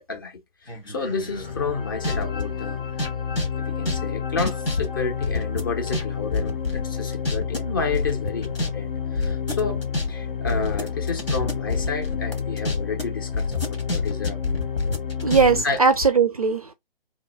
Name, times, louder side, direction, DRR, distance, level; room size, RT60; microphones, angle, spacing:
voice 1, 0.0-2.8 3.6-14.4 15.6-15.8, left 4 dB, 20° left, 0.6 m, -30 dB
sound 1, 0.7-2.4 2.9-6.0 6.3-7.6 7.9-8.7 9.0-13.0 13.3-16.1, left 3 dB, 85° left, 1.4 m, -27 dB
sound 2, 1.3-15.6, left 7 dB, 65° left, 0.7 m, -30 dB
voice 2, 15.2-16.7, right 5 dB, 40° right, 0.4 m, -19 dB
3.0 x 2.4 x 3.1 m
figure-of-eight pair, 140°, 29 cm